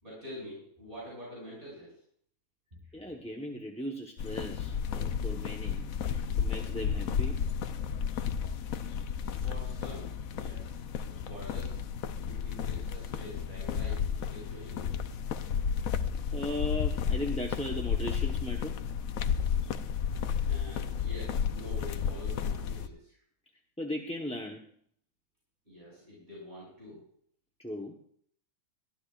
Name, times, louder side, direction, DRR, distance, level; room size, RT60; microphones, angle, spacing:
voice 1, 0.0-1.9 9.3-10.7 11.0-11.8 12.3-15.0 20.4-23.2 25.7-27.0, equal, 40° right, -6 dB, 7.2 m, -46 dB
voice 2, 2.9-7.4 16.3-18.8 23.8-24.6 27.6-28.0, left 1 dB, 5° left, 0 dB, 0.9 m, -37 dB
sound 1, 4.2-22.9, left 7 dB, 75° left, 1.1 m, -32 dB
22.0 x 14.5 x 2.5 m, 0.62 s
omnidirectional pair, 1.5 m